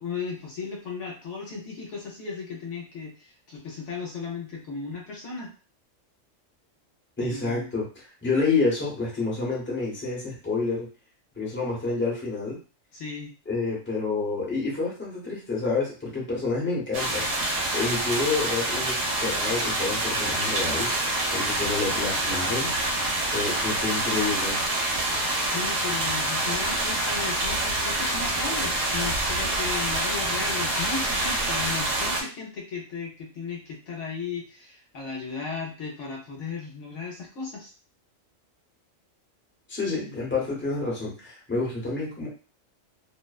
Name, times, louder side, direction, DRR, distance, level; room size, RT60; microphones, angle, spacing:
voice 1, 0.0-5.5 7.2-7.7 12.9-13.3 25.5-37.7 39.9-40.2, left 5 dB, 70° left, -2 dB, 1.0 m, -35 dB
voice 2, 7.2-10.9 11.4-12.6 13.5-17.4 17.7-20.9 21.3-22.7 23.3-24.6 39.7-42.3, left 3 dB, 10° left, -5 dB, 0.8 m, -28 dB
sound 1, 16.9-32.2, right 1 dB, 70° right, 0.9 m, -26 dB
2.5 x 2.1 x 2.3 m, 0.36 s
omnidirectional pair, 1.3 m